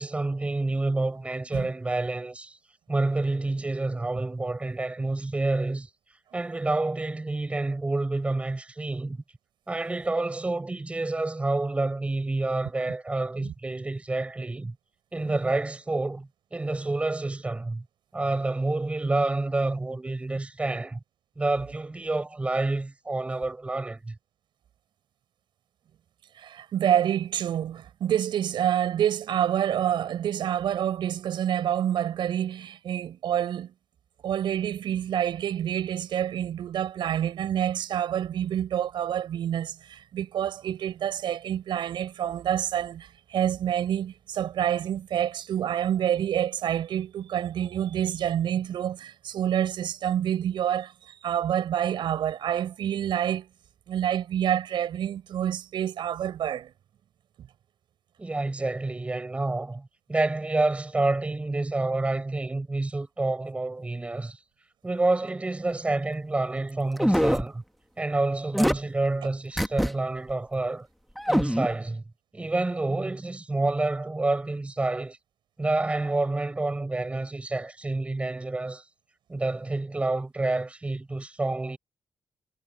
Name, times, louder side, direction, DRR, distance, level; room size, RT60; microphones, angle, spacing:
voice 1, 0.0-2.6 2.9-5.9 6.3-9.2 9.7-14.7 15.1-17.8 18.1-21.0 21.4-24.1 58.2-64.4 64.8-67.6 68.0-70.9 71.3-72.0 72.3-75.2 75.6-78.8 79.3-81.8, right 2 dB, 15° right, 6.7 m, -28 dB
voice 2, 26.4-33.7 34.2-50.9 51.2-53.5 53.9-56.7, right 10 dB, 75° right, 6.5 m, -27 dB
sound 1, 67.0-67.5 68.5-68.8 69.6-69.9 70.3-70.4 71.2-71.7, equal, ahead, 1.4 m, -23 dB
wide cardioid pair, 155°, 8 cm